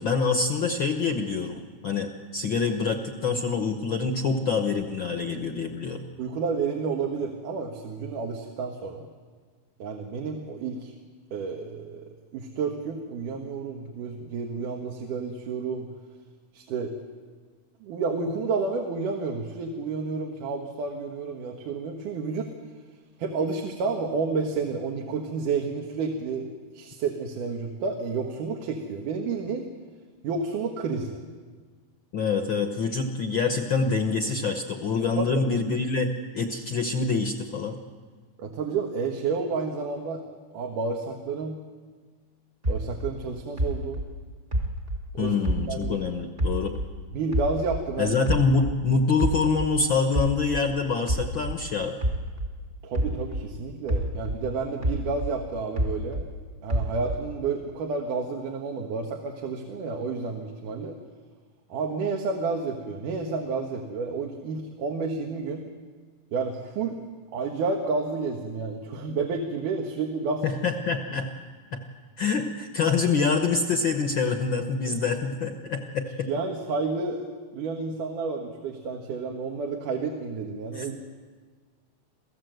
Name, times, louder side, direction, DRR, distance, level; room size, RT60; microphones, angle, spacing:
voice 1, 0.0-6.0 32.1-36.1 36.3-37.8 45.2-46.7 48.0-51.9 70.4-71.3 71.7-71.8 72.2-76.3 80.7-81.0, left 4 dB, 60° left, 5 dB, 1.3 m, -26 dB
voice 2, 6.2-9.1 9.8-10.9 11.3-12.1 12.3-15.9 16.5-16.9 17.8-22.5 23.2-29.7 30.2-31.2 35.2-35.4 38.4-40.2 40.5-41.6 42.7-44.0 45.1-45.3 45.7-46.0 47.1-48.2 52.8-56.3 56.6-60.9 61.7-65.7 66.3-67.0 67.3-70.4 74.9-75.0 76.3-81.0, right 4 dB, 85° right, 2 dB, 3.1 m, -30 dB
sound 1, 42.6-46.0 46.4-48.8 49.2-53.5 53.9-56.3 56.7-57.4, right 1 dB, 25° right, 1.3 m, -29 dB
28.0 x 16.0 x 7.9 m, 1.5 s
omnidirectional pair, 3.6 m